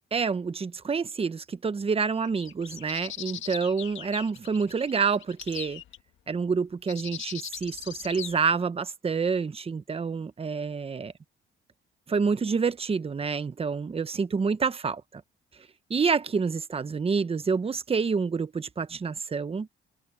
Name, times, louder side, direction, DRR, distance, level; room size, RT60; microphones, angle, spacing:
voice 1, 0.1-5.8 6.3-11.1 12.1-15.2 15.9-19.7, right 5 dB, 30° right, 1.0 m, -28 dB
sound 1, 2.3-6.0 6.9-8.4, left 11 dB, 75° left, 1.9 m, -40 dB
cardioid pair, 90°, 20 cm